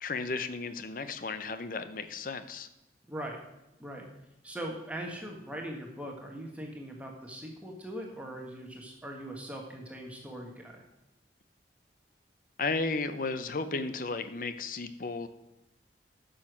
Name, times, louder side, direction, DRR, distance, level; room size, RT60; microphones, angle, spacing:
voice 1, 0.0-2.7 12.6-15.3, left 3 dB, 50° left, 11 dB, 0.7 m, -34 dB
voice 2, 3.1-3.4 3.8-4.0 4.4-10.8, right 1 dB, 10° right, 0 dB, 1.4 m, -40 dB
10.0 x 6.5 x 6.1 m, 0.91 s
head